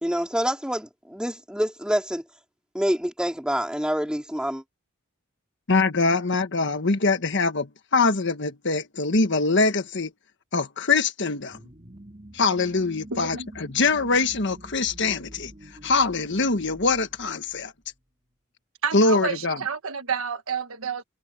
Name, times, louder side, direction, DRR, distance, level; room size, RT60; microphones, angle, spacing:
voice 1, 0.0-2.2 2.7-4.6, equal, 5° right, 4.3 m, -26 dB
voice 2, 5.7-10.1 10.5-11.6 12.3-15.5 15.8-17.7 18.9-19.6, left 3 dB, 55° left, 1.4 m, -23 dB
sound 1, 11.5-17.9, right 1 dB, 30° right, 3.8 m, -46 dB
voice 3, 13.1-13.5 18.8-21.0, right 6 dB, 85° right, 1.4 m, -29 dB
head